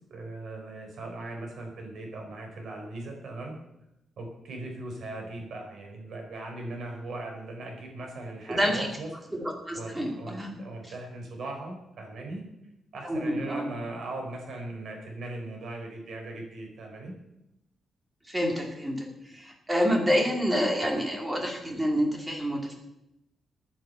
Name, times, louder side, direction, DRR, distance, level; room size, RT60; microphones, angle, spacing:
voice 1, 0.1-3.5 4.2-9.1 9.8-12.4 12.9-17.2, right 2 dB, 60° right, 2 dB, 4.3 m, -39 dB
voice 2, 8.5-8.9 9.3-10.6 13.0-13.7 18.3-22.7, equal, 10° right, 2 dB, 2.4 m, -28 dB
10.5 x 9.9 x 7.9 m, 0.87 s
wide cardioid pair, 175°, 0 cm